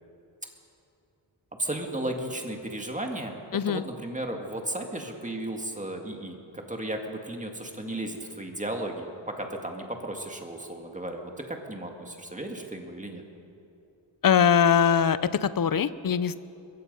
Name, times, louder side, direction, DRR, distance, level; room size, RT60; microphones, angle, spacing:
voice 1, 1.6-13.2, right 1 dB, 15° right, 2 dB, 2.0 m, -35 dB
voice 2, 3.5-3.8 14.2-16.4, left 7 dB, 45° left, 15 dB, 0.7 m, -22 dB
22.5 x 22.5 x 5.4 m, 2.7 s
wide cardioid pair, 145°, 47 cm